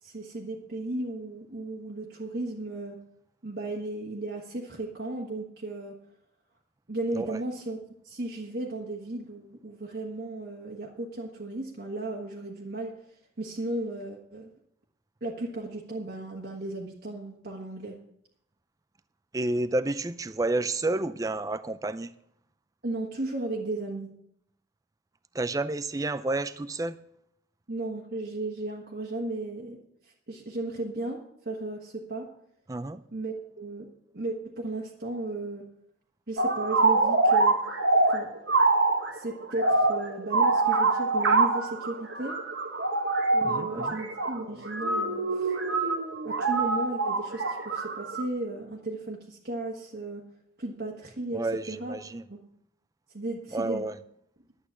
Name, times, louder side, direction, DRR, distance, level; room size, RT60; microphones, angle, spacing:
voice 1, 0.0-3.0 3.4-5.9 6.9-12.9 13.4-14.5 15.2-18.0 22.8-24.1 27.7-29.8 30.3-31.2 31.4-32.3 33.1-33.9 34.1-35.7 36.3-37.6 38.1-38.3 39.1-42.4 43.3-45.6 46.2-50.2 50.6-51.9 52.3-52.4 53.1-53.8, right 2 dB, 60° right, 1.5 m, -35 dB
voice 2, 19.3-22.1 25.3-27.0 32.7-33.0 43.4-44.0 51.3-52.2 53.5-54.0, right 2 dB, 20° right, 0.4 m, -30 dB
sound 1, 36.4-48.3, right 3 dB, 75° right, 1.3 m, -25 dB
11.0 x 8.4 x 7.1 m
head